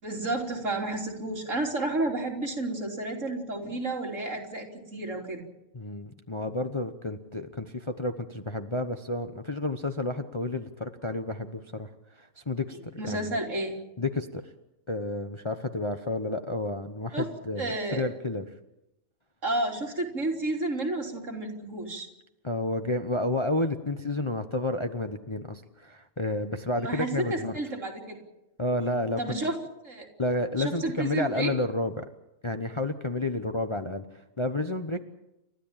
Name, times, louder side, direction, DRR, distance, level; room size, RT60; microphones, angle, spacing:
voice 1, 0.0-5.4 13.0-13.8 17.1-17.3 17.6-18.0 19.4-22.1 26.8-28.2 29.2-29.5 29.8-30.1 30.6-31.5, right 2 dB, 60° right, 0 dB, 3.9 m, -31 dB
voice 2, 5.7-13.4 14.0-14.4 14.9-18.4 22.4-27.6 28.6-29.4 30.2-32.1 32.4-35.1, left 2 dB, 25° left, 7 dB, 0.9 m, -31 dB
29.5 x 13.0 x 8.9 m, 0.93 s
omnidirectional pair, 1.5 m